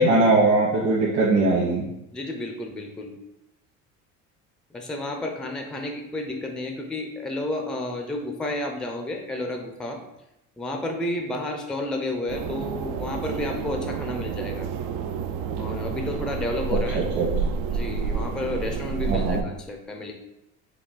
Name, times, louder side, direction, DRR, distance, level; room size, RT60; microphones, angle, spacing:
voice 1, 0.0-1.8 16.9-17.3 19.1-19.4, right 2 dB, 55° right, -7 dB, 1.2 m, -20 dB
voice 2, 2.1-3.1 4.7-10.0 10.6-14.7 15.6-17.3 17.6-20.1, left 2 dB, ahead, 3 dB, 0.4 m, -31 dB
sound 1, 12.3-19.4, right 5 dB, 75° right, 0.5 m, -29 dB
4.7 x 2.2 x 3.8 m, 0.87 s
cardioid pair, 110°, 35 cm